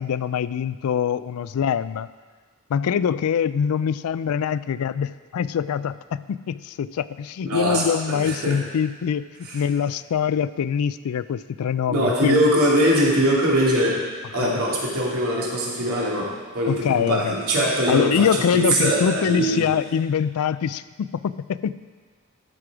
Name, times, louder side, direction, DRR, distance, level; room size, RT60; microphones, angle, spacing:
voice 1, 0.0-2.1 2.7-9.3 9.5-12.4 14.4-14.6 16.7-17.3 17.9-21.9, left 7 dB, 75° left, 16 dB, 0.3 m, -24 dB
voice 2, 7.4-8.6 9.4-9.6 11.9-14.0 14.3-19.7, right 1 dB, 80° right, -5 dB, 2.6 m, -22 dB
13.0 x 6.0 x 4.9 m, 1.5 s
head